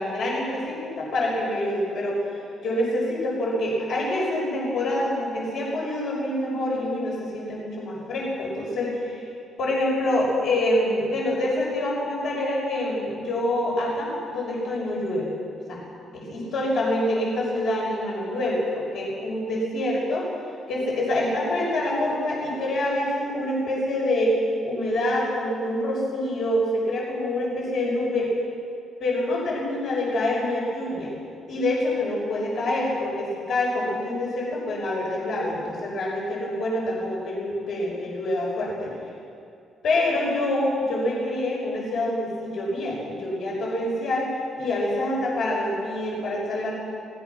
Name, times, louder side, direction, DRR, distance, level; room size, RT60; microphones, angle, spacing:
voice 1, 0.0-9.3 9.6-15.3 15.7-15.8 16.1-20.3 20.7-24.3 24.6-28.3 29.0-31.1 31.5-38.9 39.8-46.7, left 1 dB, 70° left, -3 dB, 6.5 m, -26 dB
25.5 x 19.5 x 6.1 m, 2.5 s
cardioid pair, 90°, 0 cm